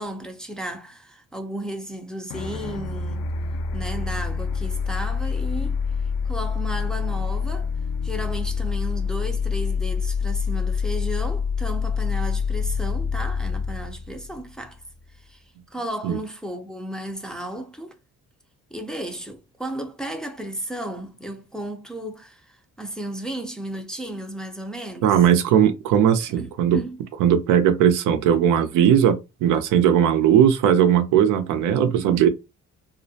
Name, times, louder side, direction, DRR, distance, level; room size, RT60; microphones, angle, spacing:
voice 1, 0.0-3.3 3.7-5.8 6.3-7.7 8.0-14.8 15.2-15.4 15.7-18.0 18.7-25.2 26.2-27.0, right 1 dB, ahead, 0.4 m, -34 dB
sound 1, 2.3-15.0, left 5 dB, 80° left, 0.5 m, -26 dB
voice 2, 25.0-26.8 27.2-32.3, right 9 dB, 85° right, 0.5 m, -18 dB
2.4 x 2.0 x 2.7 m
cardioid pair, 90°, 30 cm